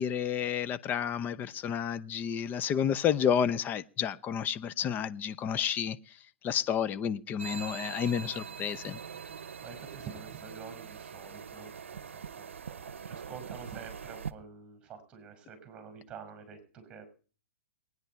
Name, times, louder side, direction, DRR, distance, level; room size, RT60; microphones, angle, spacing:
voice 1, 0.0-6.0 6.4-9.0, left 8 dB, 30° left, 0.7 m, -30 dB
sound 1, 7.4-14.3, right 7 dB, 85° right, 0.7 m, -43 dB
voice 2, 9.3-17.1, right 6 dB, 20° right, 6.0 m, -48 dB
22.5 x 9.6 x 4.6 m
hypercardioid pair, 120°, 7 cm